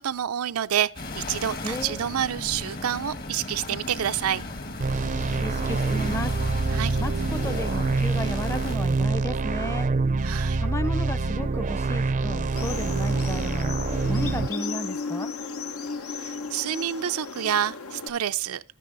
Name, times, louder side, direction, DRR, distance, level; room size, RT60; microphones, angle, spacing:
voice 1, 0.0-4.4 6.7-7.0 10.2-10.6 16.2-18.6, right 9 dB, 85° right, 0.5 m, -28 dB
sound 1, 0.9-8.8, left 2 dB, 45° left, 1.3 m, -36 dB
voice 2, 1.6-2.0 5.4-6.4 7.0-9.9 10.6-13.8 14.1-15.3, equal, 15° left, 0.6 m, -33 dB
sound 2, 4.8-14.5, right 3 dB, 35° right, 0.5 m, -26 dB
sound 3, 12.5-18.1, left 4 dB, 85° left, 0.9 m, -35 dB
11.0 x 9.2 x 3.9 m
head